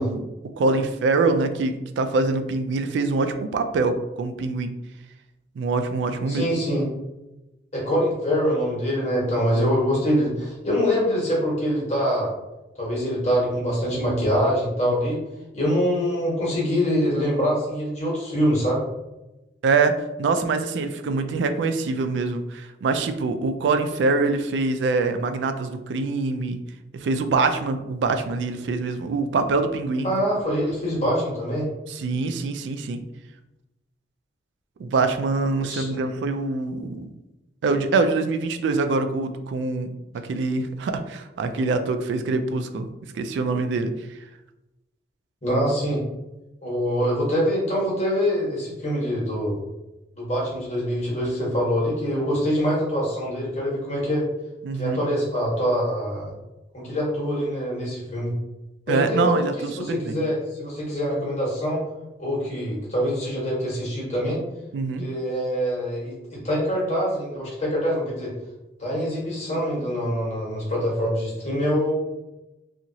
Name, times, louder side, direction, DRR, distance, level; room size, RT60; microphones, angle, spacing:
voice 1, 0.0-4.7 5.6-6.5 9.5-9.6 19.6-26.6 26.9-30.1 31.9-33.0 34.8-37.1 37.6-42.9 43.1-44.2 54.6-55.0 58.9-60.2 64.7-65.0, right 3 dB, 90° right, 8 dB, 0.3 m, -24 dB
voice 2, 6.3-6.8 7.7-12.3 12.8-15.2 15.5-18.8 30.0-31.7 35.7-35.9 45.4-46.0 46.6-49.6 50.2-54.3 54.8-56.3 56.7-58.3 58.9-59.3 59.7-61.8 62.2-64.4 65.0-68.3 68.8-71.9, equal, 40° left, -5 dB, 1.1 m, -24 dB
2.9 x 2.4 x 2.7 m, 0.98 s
head